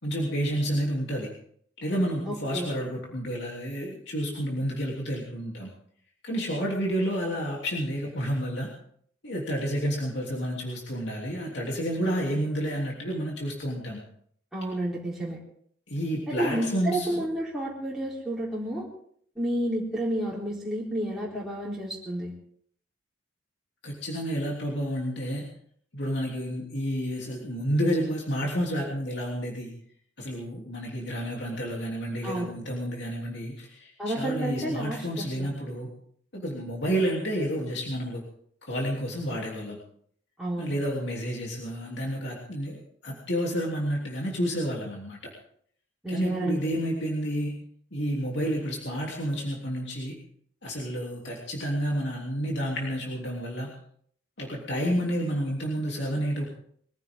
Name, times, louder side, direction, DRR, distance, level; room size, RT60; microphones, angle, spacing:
voice 1, 0.0-1.3 1.8-5.7 6.2-8.7 9.2-14.0 15.9-17.3 23.8-25.5 25.9-29.7 30.2-35.9 36.3-38.2 38.6-39.8 40.6-45.2 46.1-47.6 47.9-50.2 50.6-53.7 54.4-56.5, equal, 60° left, -2 dB, 3.1 m, -30 dB
voice 2, 2.2-2.7 14.5-15.4 16.3-18.9 19.4-22.3 32.2-32.5 34.0-35.5 40.4-40.7 46.0-46.8, right 1 dB, ahead, -7 dB, 3.8 m, -31 dB
23.0 x 15.5 x 3.7 m, 0.62 s
head